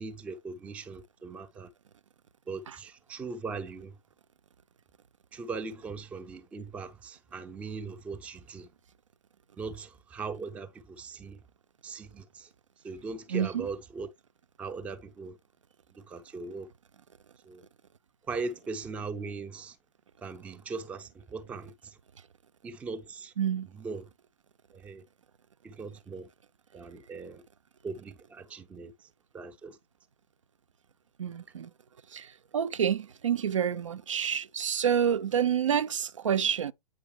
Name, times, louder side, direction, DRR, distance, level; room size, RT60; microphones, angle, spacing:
voice 1, 0.0-1.7 2.5-4.0 5.3-8.7 9.6-11.4 11.8-12.5 12.8-14.1 14.6-15.4 16.0-16.7 17.4-17.6 18.3-19.8 20.2-22.0 22.6-23.3 23.7-24.1 24.7-25.0 25.6-26.3 26.7-27.4 27.8-28.9 29.3-29.8, right 4 dB, 5° right, 0.5 m, -39 dB
voice 2, 13.3-13.7 23.4-23.7 31.2-31.7 32.1-36.7, right 8 dB, 60° right, 0.5 m, -28 dB
8.5 x 4.8 x 3.2 m
figure-of-eight pair, 125°, 18 cm